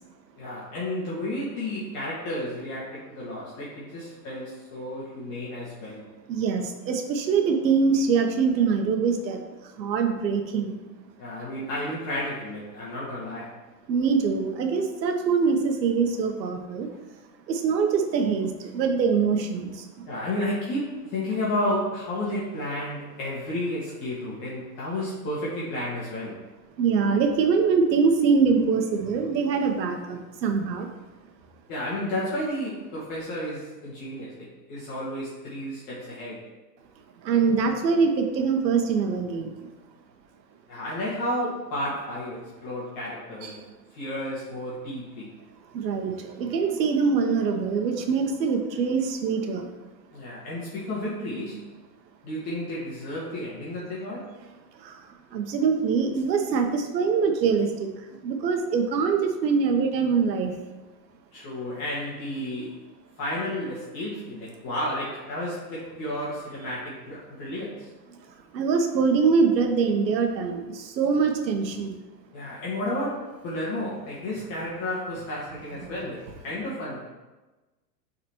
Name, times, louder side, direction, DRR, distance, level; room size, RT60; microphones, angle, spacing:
voice 1, 0.4-6.1 11.2-13.6 20.1-26.4 31.7-36.5 40.7-43.6 43.9-45.3 50.1-51.7 52.2-54.3 61.3-62.8 63.2-67.9 72.3-77.1, left 1 dB, 40° left, -7 dB, 1.9 m, -32 dB
voice 2, 6.3-9.4 9.8-10.8 13.9-16.9 17.5-20.1 26.8-30.9 37.2-39.7 43.4-43.5 45.7-49.7 54.8-55.1 55.3-57.9 58.2-60.5 68.5-72.0 75.8-75.9, right 5 dB, 85° right, 5 dB, 1.2 m, -24 dB
9.6 x 4.1 x 3.1 m, 1.2 s
hypercardioid pair, 140°, 50 cm